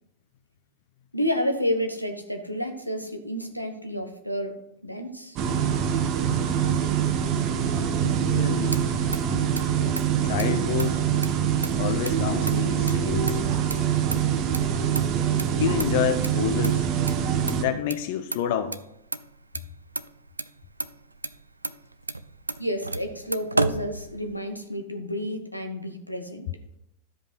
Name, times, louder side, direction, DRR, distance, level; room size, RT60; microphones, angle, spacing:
voice 1, 1.1-4.6 4.8-5.4 22.6-26.5, equal, 90° left, 5 dB, 1.3 m, -30 dB
sound 1, 5.4-17.6, right 8 dB, 40° right, 1.0 m, -24 dB
voice 2, 8.3-8.8 10.2-11.1 11.8-13.4 15.5-16.9 17.6-18.8, left 10 dB, 50° left, 9 dB, 0.6 m, -28 dB
Motor vehicle (road), 8.3-24.6, right 2 dB, 80° right, 0.4 m, -35 dB
12.5 x 5.3 x 5.7 m, 0.81 s
figure-of-eight pair, 90°, 0 cm